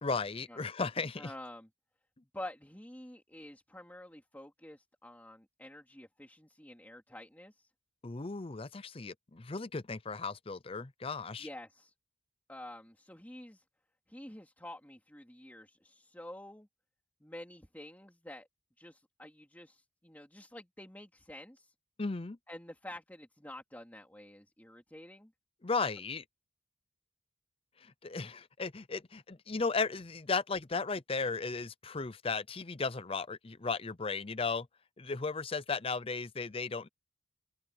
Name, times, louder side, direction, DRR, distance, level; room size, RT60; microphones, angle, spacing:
voice 1, 0.0-1.3 8.0-11.5 22.0-22.4 25.6-26.2 27.8-34.7 35.0-36.9, left 4 dB, 30° left, 0.6 m, -35 dB
voice 2, 1.2-1.7 2.3-7.7 11.4-11.9 12.5-13.6 14.1-16.7 17.2-18.5 18.8-21.7 22.5-25.3, left 1 dB, 10° left, 2.9 m, -49 dB
head